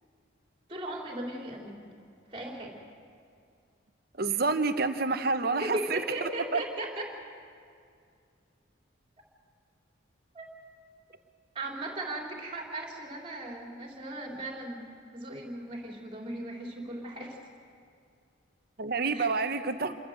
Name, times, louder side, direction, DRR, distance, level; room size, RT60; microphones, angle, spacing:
voice 1, 0.7-1.8 2.3-2.8 5.6-7.2 10.3-10.5 11.5-17.4 19.1-19.3, right 1 dB, 25° right, 0 dB, 3.3 m, -37 dB
voice 2, 4.2-6.6 18.8-20.0, right 4 dB, 50° right, 9 dB, 1.0 m, -28 dB
28.0 x 13.5 x 7.9 m, 2.3 s
head